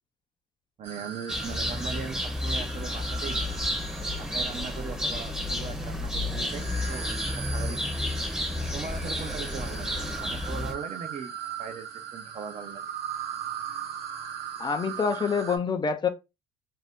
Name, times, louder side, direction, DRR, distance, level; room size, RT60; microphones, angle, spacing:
voice 1, 0.8-3.5 4.2-7.9 8.7-11.3 11.6-12.8, right 6 dB, 40° right, 0.5 m, -39 dB
sound 1, 0.8-15.6, right 7 dB, 70° right, 0.9 m, -39 dB
sound 2, 1.3-10.7, left 1 dB, 5° right, 0.8 m, -31 dB
voice 2, 14.6-16.1, left 5 dB, 25° left, 0.4 m, -26 dB
2.6 x 2.1 x 3.5 m
cardioid pair, 110°, 18 cm